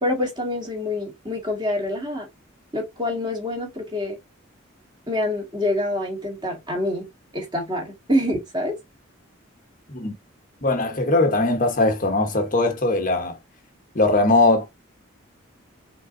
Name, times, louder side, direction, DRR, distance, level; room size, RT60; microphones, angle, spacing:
voice 1, 0.0-2.3 2.7-4.2 5.1-7.1 7.3-8.8, left 1 dB, 20° right, 2.1 m, -26 dB
voice 2, 10.6-13.4 13.9-14.6, left 2 dB, 40° left, 1.1 m, -20 dB
5.1 x 3.8 x 2.7 m
head